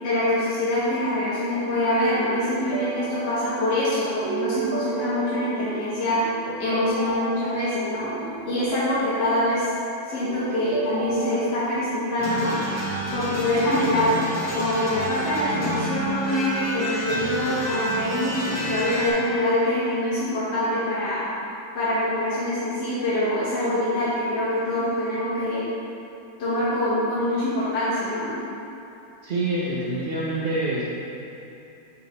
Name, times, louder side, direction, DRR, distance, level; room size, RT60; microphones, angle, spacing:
voice 1, 0.0-6.2 6.6-8.1 8.5-9.7 10.1-12.5 13.1-14.3 14.5-21.3 21.7-25.7 26.4-28.3, left 1 dB, 65° left, -11 dB, 2.1 m, -24 dB
sound 1, 2.1-11.6, right 5 dB, 80° right, 1.4 m, -34 dB
sound 2, 12.2-19.1, right 1 dB, 10° left, 0.8 m, -29 dB
voice 2, 29.2-30.8, right 2 dB, 45° right, -8 dB, 0.8 m, -26 dB
9.3 x 5.2 x 3.3 m, 2.9 s
omnidirectional pair, 2.0 m